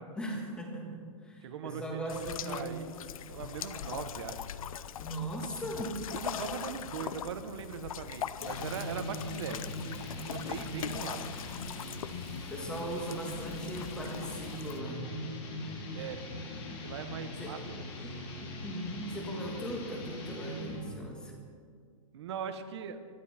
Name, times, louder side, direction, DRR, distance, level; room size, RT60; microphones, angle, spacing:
voice 1, 0.1-2.8 5.0-6.1 10.6-11.2 12.5-15.1 17.4-17.6 18.0-21.4, right 1 dB, 5° left, 1 dB, 1.6 m, -39 dB
voice 2, 1.4-2.9 3.3-4.5 6.1-9.6 10.2-11.2 15.9-16.2 16.8-17.9 22.1-23.0, right 7 dB, 50° right, 9 dB, 1.3 m, -40 dB
sound 1, 2.1-14.8, left 9 dB, 80° left, 0.6 m, -41 dB
sound 2, 8.4-21.0, left 2 dB, 50° left, 5.0 m, -41 dB
24.5 x 11.0 x 4.3 m, 2.1 s
hypercardioid pair, 175°, 18 cm